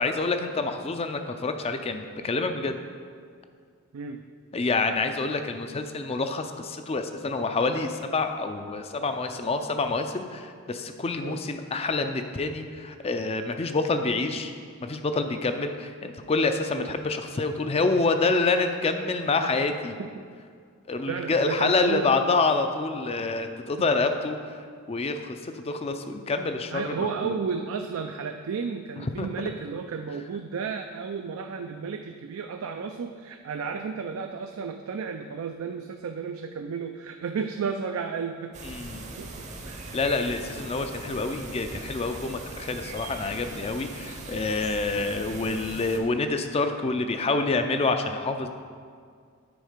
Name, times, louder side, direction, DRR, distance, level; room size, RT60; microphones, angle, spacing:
voice 1, 0.0-2.8 4.5-14.5 14.8-20.0 20.9-24.6 24.9-27.3 29.2-29.3 38.6-39.1 39.9-48.5, left 3 dB, 25° left, 7 dB, 0.4 m, -27 dB
voice 2, 21.1-22.3 26.7-38.6 39.2-39.9 44.9-45.1, right 5 dB, 70° right, 5 dB, 0.4 m, -33 dB
sound 1, 38.5-46.0, right 2 dB, 30° right, 0.7 m, -40 dB
9.3 x 4.4 x 5.0 m, 2.1 s
head